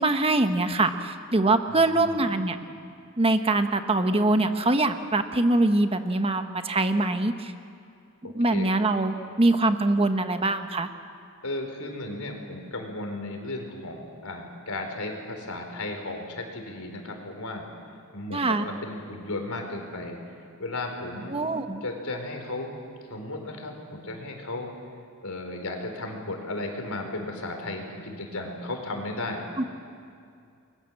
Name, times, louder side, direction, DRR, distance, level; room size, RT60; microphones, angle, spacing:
voice 1, 0.0-2.6 3.2-7.5 8.2-10.9 18.3-18.6 21.3-21.8 29.6-29.7, right 2 dB, 25° right, 8 dB, 1.1 m, -23 dB
voice 2, 1.7-2.5 8.5-8.7 11.4-17.7 18.1-20.2 20.6-21.4 21.8-22.7 23.1-24.7 25.2-29.5, left 2 dB, 75° left, 3 dB, 4.6 m, -35 dB
30.0 x 22.0 x 7.7 m, 2.4 s
head